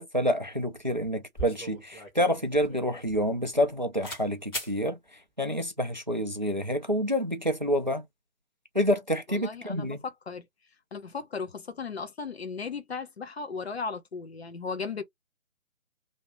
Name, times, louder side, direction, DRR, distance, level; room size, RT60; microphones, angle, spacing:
voice 1, 0.0-5.0 5.4-8.0 8.7-10.0, equal, 35° right, 0.4 m, -28 dB
sound 1, 1.4-3.7 4.0-4.2 4.5-4.7, right 1 dB, 15° left, 1.2 m, -40 dB
voice 2, 9.3-10.5 10.9-15.0, left 5 dB, 50° left, 0.8 m, -36 dB
2.8 x 2.8 x 3.0 m
figure-of-eight pair, 150°, 42 cm